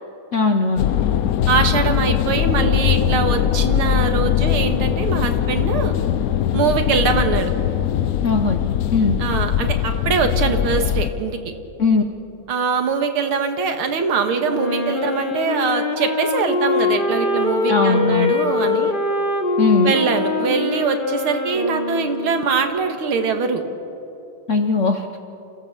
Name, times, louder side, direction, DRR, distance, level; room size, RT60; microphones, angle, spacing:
voice 1, 0.3-0.9 8.2-8.6 8.9-9.1 11.8-12.0 17.7-18.3 19.6-19.9 24.5-25.1, left 3 dB, 55° left, 6 dB, 0.8 m, -18 dB
sound 1, 0.8-11.1, left 10 dB, 85° left, 0.8 m, -20 dB
voice 2, 1.5-5.9 6.5-7.5 9.2-11.4 12.5-18.9 19.8-23.6, right 5 dB, 80° right, 6 dB, 2.4 m, -22 dB
Wind instrument woodwind instrument, 14.4-22.8, left 3 dB, 30° left, 1.1 m, -23 dB
29.0 x 16.0 x 7.4 m, 3.0 s
omnidirectional pair, 2.3 m